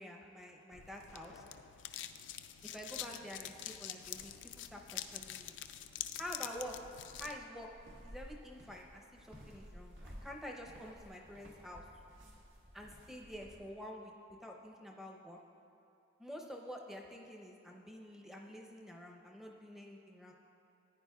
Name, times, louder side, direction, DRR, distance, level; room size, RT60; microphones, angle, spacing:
voice 1, 0.0-1.4 2.6-5.5 6.2-6.8 7.2-7.7 8.0-11.8 12.7-14.1 14.4-15.4 16.2-20.3, equal, ahead, 0 dB, 0.7 m, -48 dB
sound 1, 0.7-7.3, left 11 dB, 65° left, 0.4 m, -46 dB
sound 2, 4.0-13.5, equal, 70° right, 1.5 m, -56 dB
14.5 x 9.8 x 2.3 m, 2.9 s
head